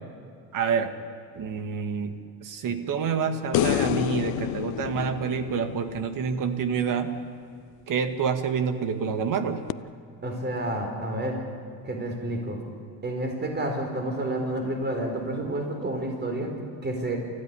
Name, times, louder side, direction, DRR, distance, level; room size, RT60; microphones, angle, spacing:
voice 1, 0.5-0.9 1.3-2.2 2.4-7.2 7.9-9.6, right 6 dB, 55° right, 8 dB, 2.2 m, -27 dB
sound 1, 3.5-6.9 9.7-9.8, left 18 dB, 65° left, 0.6 m, -29 dB
voice 2, 10.2-11.4 11.8-12.6 13.0-16.5 16.8-17.2, right 1 dB, 25° right, 3 dB, 4.9 m, -29 dB
29.0 x 15.0 x 10.0 m, 2.2 s
cardioid pair, 105°, 39 cm